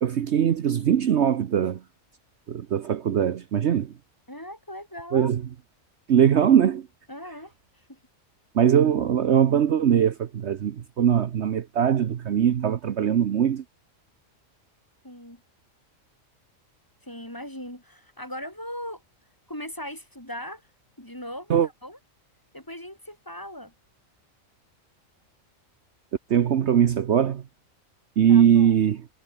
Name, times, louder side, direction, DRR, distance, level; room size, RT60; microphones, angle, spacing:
voice 1, 0.0-1.8 2.5-3.9 5.1-5.4 6.1-6.9 8.5-13.6 21.5-21.7 26.3-27.4 28.2-29.0, right 9 dB, 60° right, 1.1 m, -21 dB
voice 2, 4.3-5.3 7.1-7.5 7.9-8.0 15.0-15.4 17.0-19.0 19.5-20.6 21.0-22.0 22.5-23.7 28.3-28.7, left 1 dB, 15° left, 4.1 m, -39 dB
omnidirectional pair, 1.4 m